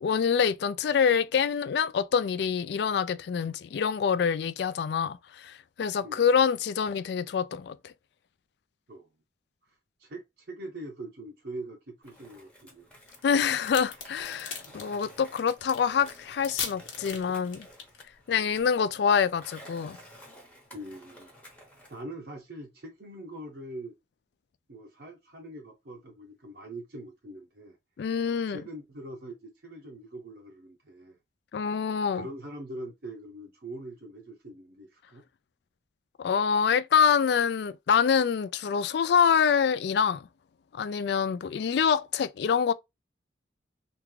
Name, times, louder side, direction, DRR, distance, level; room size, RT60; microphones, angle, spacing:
voice 1, 0.0-7.9 13.2-17.7 18.3-20.0 28.0-28.6 31.5-32.3 36.2-40.3 40.7-42.7, left 7 dB, 60° left, 0.3 m, -26 dB
voice 2, 9.7-12.9 14.3-14.4 14.7-14.8 20.7-21.3 21.9-24.0 24.7-27.8 28.5-31.2 32.1-35.2, right 1 dB, 55° right, 0.6 m, -43 dB
Skateboard, 12.0-22.0, equal, 5° left, 0.9 m, -52 dB
sound 1, 13.1-18.0, left 6 dB, 90° left, 1.1 m, -37 dB
3.5 x 2.4 x 3.0 m
head